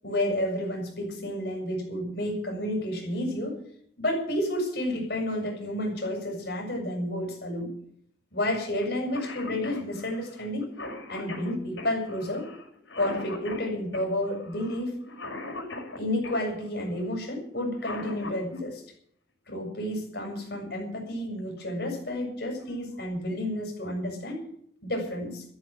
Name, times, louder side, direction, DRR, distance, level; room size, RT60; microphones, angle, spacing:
voice 1, 0.0-3.6 4.0-7.7 8.3-10.7 11.1-12.5 13.0-15.0 16.0-18.8 19.5-24.4 24.8-25.4, left 1 dB, 60° left, 2 dB, 7.1 m, -31 dB
Cough, 8.8-8.9 9.1-16.4 17.6-18.6 20.2-20.3 21.4-21.7 22.1-22.2 22.6-23.1, left 2 dB, 80° left, 6.4 m, -40 dB
14.5 x 10.5 x 8.6 m, 0.64 s
head